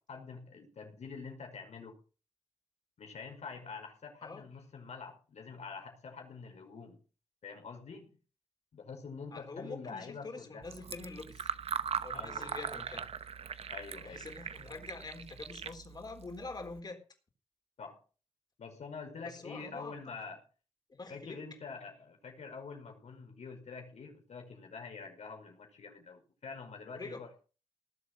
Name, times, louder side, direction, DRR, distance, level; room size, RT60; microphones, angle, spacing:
voice 1, 0.1-2.0 3.0-7.0 7.4-8.2 8.7-10.7 12.1-12.6 13.7-14.3 17.8-18.0 18.6-20.4 21.1-27.3, left 5 dB, 90° left, 3 dB, 5.4 m, -46 dB
voice 2, 9.3-11.5 12.0-13.1 14.0-17.0 19.2-20.0 20.9-21.4 26.9-27.2, left 3 dB, 40° left, 5 dB, 3.8 m, -45 dB
Fill (with liquid), 10.6-16.8, right 7 dB, 65° right, 0.9 m, -40 dB
19.0 x 8.0 x 6.2 m, 0.36 s
wide cardioid pair, 175°, 11 cm